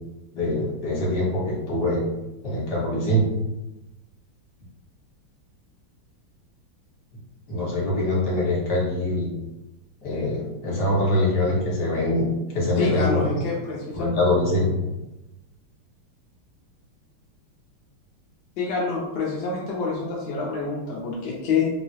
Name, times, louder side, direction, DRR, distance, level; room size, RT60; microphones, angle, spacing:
voice 1, 0.3-2.0 2.4-3.3 7.5-9.3 10.0-12.3 12.5-13.3 13.9-14.7, left 1 dB, 55° left, -5 dB, 1.4 m, -23 dB
voice 2, 12.8-14.1 18.6-21.7, left 4 dB, 75° left, -4 dB, 0.9 m, -27 dB
3.7 x 2.0 x 2.7 m, 0.99 s
omnidirectional pair, 2.3 m